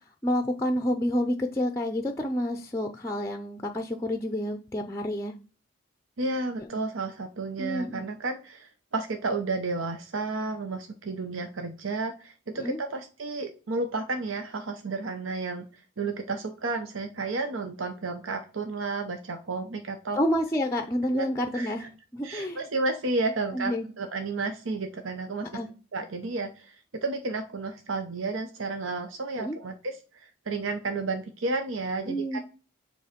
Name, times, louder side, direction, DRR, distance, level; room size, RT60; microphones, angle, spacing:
voice 1, 0.2-5.3 7.6-8.1 12.6-12.8 20.1-22.7 23.5-23.9 25.5-25.7 29.4-29.6 32.1-32.4, equal, 15° left, 6 dB, 0.5 m, -29 dB
voice 2, 6.2-20.2 21.1-21.3 21.5-21.9 22.2-25.5 25.9-32.4, right 3 dB, 80° right, 6 dB, 0.8 m, -32 dB
6.9 x 3.0 x 5.0 m, 0.36 s
head